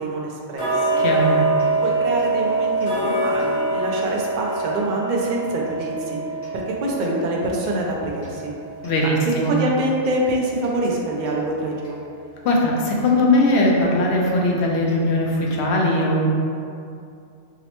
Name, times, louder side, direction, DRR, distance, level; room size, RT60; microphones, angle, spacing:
voice 1, 0.0-1.0 1.8-6.2 6.5-8.5 9.5-12.0, right 1 dB, 55° right, -1 dB, 0.5 m, -25 dB
Tick-tock, 0.6-11.4 11.8-11.9 12.5-12.6 13.0-13.1 13.7-13.8 14.3-14.4 14.9-15.0 15.5-15.6, right 3 dB, 55° left, 1.2 m, -25 dB
voice 2, 1.0-1.4 8.8-9.5 12.4-16.3, left 1 dB, 70° left, -2 dB, 0.9 m, -19 dB
4.8 x 2.1 x 2.9 m, 2.4 s
omnidirectional pair, 1.2 m